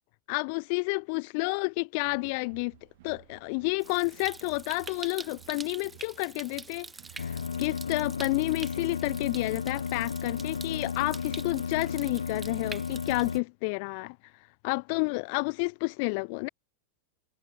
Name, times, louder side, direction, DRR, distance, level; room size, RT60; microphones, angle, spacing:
voice 1, 0.3-2.7 3.0-6.9 7.2-14.2 14.6-16.5, left 34 dB, 45° left, 0.7 m, -30 dB
sound 1, 2.0-10.4, right 19 dB, 50° right, 4.0 m, -57 dB
Stream, 3.8-13.4, right 4 dB, 15° right, 7.7 m, -46 dB
sound 2, 7.2-13.4, left 6 dB, 70° left, 2.2 m, -34 dB
figure-of-eight pair, 90°, 0 cm